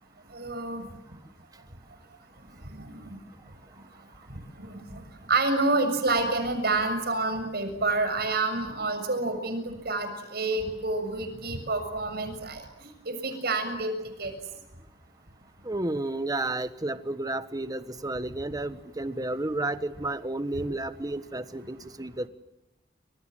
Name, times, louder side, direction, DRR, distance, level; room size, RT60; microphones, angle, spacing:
voice 1, 0.3-0.8 2.7-3.2 4.3-12.6 13.0-13.9 14.2-14.3, right 3 dB, 60° right, 8 dB, 6.8 m, -28 dB
voice 2, 15.6-22.3, right 2 dB, 20° right, 12 dB, 1.3 m, -31 dB
29.0 x 26.5 x 7.7 m, 0.93 s
head